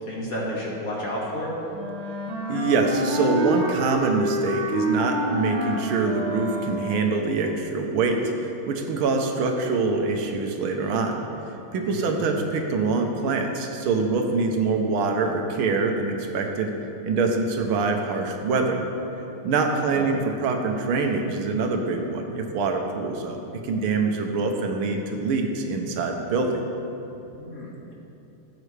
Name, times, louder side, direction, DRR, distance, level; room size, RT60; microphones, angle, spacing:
voice 1, 0.0-1.5 11.8-12.2 19.6-20.0 27.3-27.9, equal, 45° left, -4 dB, 1.9 m, -32 dB
Wind instrument woodwind instrument, 1.7-7.2, equal, 60° right, 2.1 m, -28 dB
voice 2, 2.5-11.3 11.7-16.7 17.0-18.8 19.4-23.4 23.6-26.6, right 4 dB, 80° right, 3 dB, 1.7 m, -24 dB
15.5 x 7.6 x 3.3 m, 2.9 s
omnidirectional pair, 2.3 m